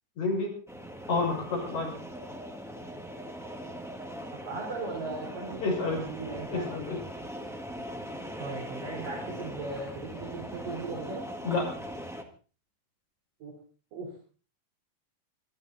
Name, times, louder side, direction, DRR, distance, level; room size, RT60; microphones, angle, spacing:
voice 1, 0.2-0.5 1.1-1.9 5.6-6.0 6.5-7.0 11.4-11.7, left 3 dB, 55° left, 0 dB, 7.4 m, -29 dB
sound 1, 0.7-12.2, equal, ahead, 0.8 m, -40 dB
voice 2, 4.4-6.7 8.4-11.2 13.4-13.5 13.9-14.1, right 3 dB, 85° right, -2 dB, 5.8 m, -38 dB
25.5 x 11.5 x 4.2 m, 0.39 s
omnidirectional pair, 3.8 m